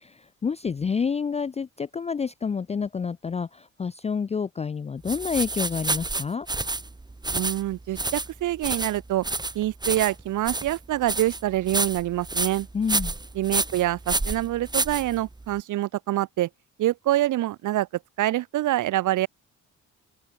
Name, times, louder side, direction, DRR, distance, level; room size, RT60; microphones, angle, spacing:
voice 1, 0.0-6.5 12.7-13.1, left 6 dB, 20° left, 0.4 m, -28 dB
sound 1, 5.1-15.5, right 2 dB, 15° right, 1.8 m, -29 dB
voice 2, 7.3-9.3 9.6-12.7 13.4-16.5 16.8-17.9 18.2-19.3, right 15 dB, 80° right, 1.9 m, -25 dB
open air
cardioid pair, 90°, 30 cm